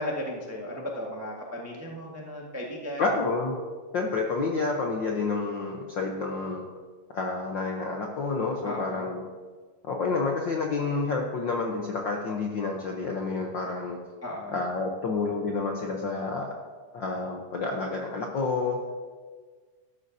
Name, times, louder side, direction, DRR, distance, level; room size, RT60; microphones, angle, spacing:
voice 1, 0.0-3.0 8.6-9.1 14.2-14.6, left 1 dB, 15° right, -2 dB, 0.4 m, -35 dB
voice 2, 3.0-3.6 3.9-6.7 7.1-9.2 9.9-14.0 14.5-16.5 16.9-18.8, left 3 dB, 70° left, 0 dB, 1.1 m, -29 dB
13.0 x 12.5 x 2.8 m, 1.5 s
omnidirectional pair, 3.3 m